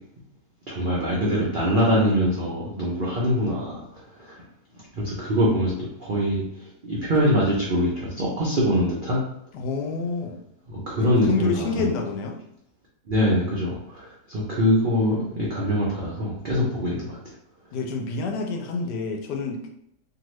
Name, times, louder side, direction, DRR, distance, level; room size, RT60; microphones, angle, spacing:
voice 1, 0.7-3.8 4.2-4.4 4.9-5.7 6.0-6.4 6.8-9.2 10.7-11.9 13.1-17.2, equal, 70° right, -5 dB, 0.4 m, -23 dB
voice 2, 9.5-10.4 11.2-12.4 17.7-19.7, left 4 dB, 80° left, 3 dB, 1.2 m, -28 dB
2.7 x 2.7 x 3.0 m, 0.76 s
omnidirectional pair, 1.8 m